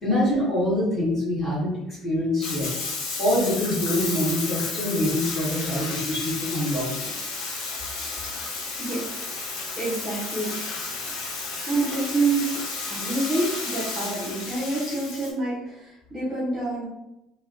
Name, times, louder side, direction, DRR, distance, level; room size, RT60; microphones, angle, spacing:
voice 1, 0.0-2.7 3.2-7.1, left 1 dB, 15° left, -10 dB, 1.4 m, -25 dB
Bathtub (filling or washing), 2.4-15.3, left 3 dB, 70° left, 0.6 m, -32 dB
voice 2, 9.8-10.5 11.7-12.5 12.9-16.9, right 2 dB, 10° right, -10 dB, 0.6 m, -27 dB
3.2 x 2.1 x 2.4 m, 0.91 s
cardioid pair, 180°, 0 cm